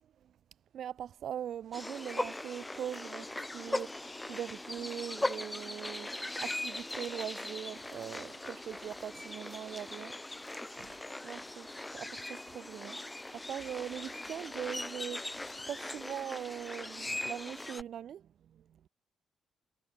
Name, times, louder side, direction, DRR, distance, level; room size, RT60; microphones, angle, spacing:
voice 1, 0.7-10.9 11.2-18.9, right 9 dB, 65° right, 1.1 m, -42 dB
sound 1, 1.7-17.8, left 2 dB, 10° left, 4.4 m, -40 dB
cardioid pair, 90°, 0 cm